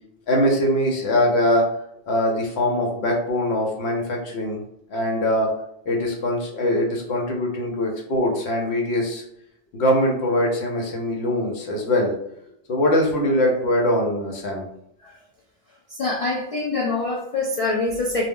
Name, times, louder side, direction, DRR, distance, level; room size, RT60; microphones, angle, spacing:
voice 1, 0.3-1.7 2.1-4.6 4.9-5.5 5.9-9.2 9.7-12.1 12.7-14.6, left 1 dB, 80° left, 0 dB, 0.9 m, -22 dB
voice 2, 15.9-18.3, left 3 dB, 65° left, -3 dB, 0.3 m, -25 dB
2.2 x 2.0 x 3.5 m, 0.75 s
omnidirectional pair, 1.1 m